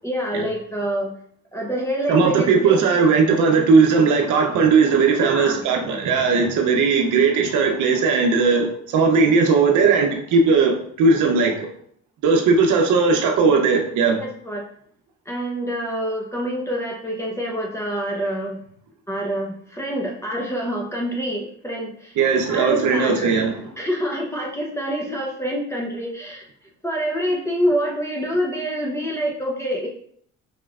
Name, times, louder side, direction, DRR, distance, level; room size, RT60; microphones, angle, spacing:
voice 1, 0.0-1.1 1.5-2.9 5.2-5.6 14.2-14.7 15.3-18.6 19.1-22.2 22.5-23.4 23.8-26.4 26.8-29.9, equal, 10° left, -2 dB, 0.8 m, -26 dB
voice 2, 2.1-11.7 12.2-14.2 22.2-23.6, right 4 dB, 80° right, 2 dB, 0.7 m, -18 dB
4.9 x 3.1 x 2.4 m, 0.63 s
cardioid pair, 90°, 30 cm